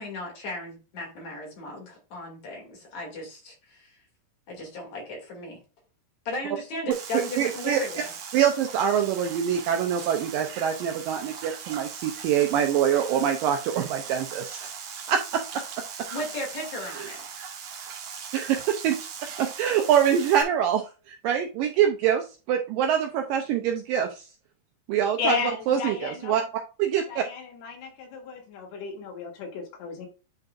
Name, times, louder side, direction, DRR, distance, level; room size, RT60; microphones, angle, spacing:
voice 1, 0.0-4.0 4.5-5.6 6.3-8.1 16.1-17.2, left 1 dB, 45° left, -1 dB, 3.6 m, -36 dB
sound 1, 6.9-20.4, right 6 dB, 65° right, 2.8 m, -39 dB
voice 2, 7.4-7.8 8.3-14.7 15.1-15.6 17.0-17.1 18.3-19.1 19.4-24.2 24.9-25.4 25.7-26.4 26.8-27.2, right 9 dB, 90° right, 4 dB, 2.0 m, -25 dB
voice 3, 25.2-26.4 27.1-30.1, left 5 dB, 85° left, 1 dB, 4.1 m, -33 dB
9.5 x 5.3 x 2.6 m, 0.32 s
omnidirectional pair, 4.7 m